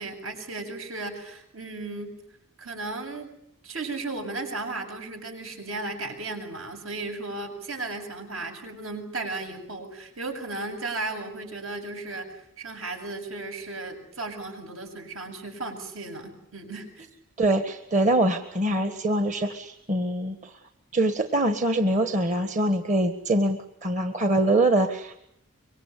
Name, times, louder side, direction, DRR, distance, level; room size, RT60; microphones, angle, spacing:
voice 1, 0.0-2.2 2.6-3.3 3.6-17.1, right 2 dB, 75° right, 4 dB, 7.6 m, -35 dB
voice 2, 17.4-20.5 20.9-25.2, right 1 dB, 35° right, 8 dB, 1.6 m, -24 dB
25.5 x 24.0 x 8.4 m, 0.75 s
head